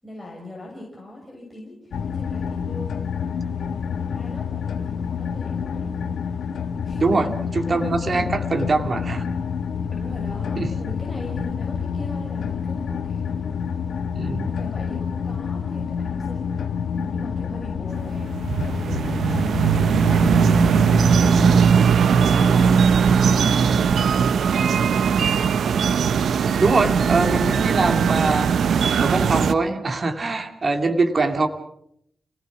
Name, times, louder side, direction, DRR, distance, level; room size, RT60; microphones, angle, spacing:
voice 1, 0.0-3.2 3.9-6.0 6.8-8.3 9.9-13.3 14.4-16.5 16.9-19.1 19.6-21.4 22.1-22.8 23.2-25.3, left 1 dB, 10° left, -2 dB, 6.7 m, -40 dB
sound 1, 1.9-21.7, left 6 dB, 90° left, 1.5 m, -28 dB
voice 2, 7.7-9.3 10.6-10.7 14.1-14.5 22.3-22.4 26.6-28.5 29.0-31.5, right 3 dB, 45° right, 5 dB, 2.4 m, -22 dB
sound 2, 17.9-29.5, right 6 dB, 90° right, 0.8 m, -19 dB
29.5 x 18.5 x 6.1 m, 0.71 s
wide cardioid pair, 105°, 0 cm